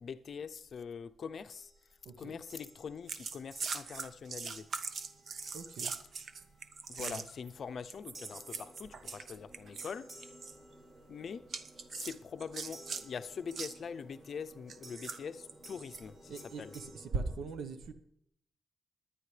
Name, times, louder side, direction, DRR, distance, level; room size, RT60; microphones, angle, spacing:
voice 1, 0.0-1.7 2.2-4.7 6.9-10.1 11.1-11.5 11.9-16.3 16.6-16.7, left 6 dB, 55° left, 0.5 m, -43 dB
sound 1, 1.5-1.9 2.5-3.1 3.5-4.1 4.5-6.6 8.1-9.3 9.8-11.2 12.7-13.7 14.8-16.9, right 1 dB, 35° right, 3.5 m, -57 dB
voice 2, 2.0-2.4 5.5-6.0 7.0-7.3 16.3-17.9, right 3 dB, 80° right, 1.1 m, -40 dB
sound 2, 3.1-7.5 7.9-9.9 10.2-10.5 11.5-13.0 13.5-13.8 14.7-16.0 16.6-16.8, right 5 dB, 55° right, 0.8 m, -41 dB
sound 3, 8.1-17.4, right 1 dB, 15° right, 3.8 m, -59 dB
21.0 x 9.8 x 3.3 m
wide cardioid pair, 130°, 0 cm